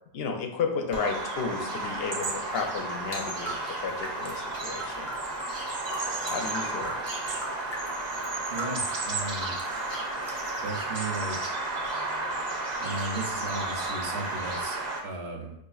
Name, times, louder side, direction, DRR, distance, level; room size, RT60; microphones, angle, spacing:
voice 1, 0.1-5.1 6.3-6.9, left 5 dB, 70° left, 3 dB, 0.8 m, -33 dB
Bird vocalization bird call bird song, 0.9-15.0, right 2 dB, 50° right, 0.6 m, -32 dB
sound 1, 3.1-7.9 8.2-11.0, equal, 20° left, 0.4 m, -40 dB
voice 2, 8.5-9.5 10.6-11.4 12.8-14.8 15.0-15.5, right 2 dB, 80° right, 2 dB, 0.9 m, -35 dB
5.1 x 2.5 x 2.3 m, 0.83 s
omnidirectional pair, 1.1 m